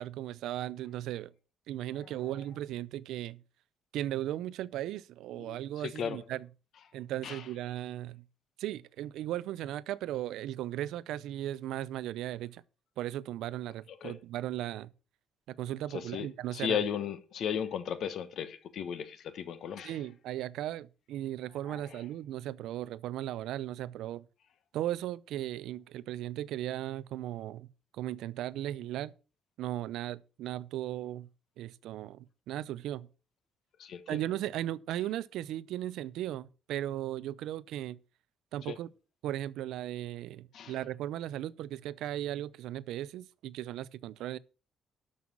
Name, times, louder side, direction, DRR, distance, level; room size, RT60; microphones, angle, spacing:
voice 1, 0.0-1.3 1.7-3.4 3.9-6.5 6.9-8.2 8.6-12.6 13.0-14.9 15.5-16.8 19.8-24.3 24.7-27.7 27.9-29.1 29.6-31.3 31.6-33.1 34.1-38.0 38.5-38.9 39.2-44.4, right 13 dB, 85° right, 0.6 m, -37 dB
voice 2, 5.4-6.2 7.2-7.5 14.0-14.2 15.9-20.0 21.7-22.0 33.8-34.2 38.7-38.8 40.5-40.8, left 8 dB, 55° left, 1.2 m, -36 dB
12.5 x 5.6 x 6.1 m
cardioid pair, 170°, 0 cm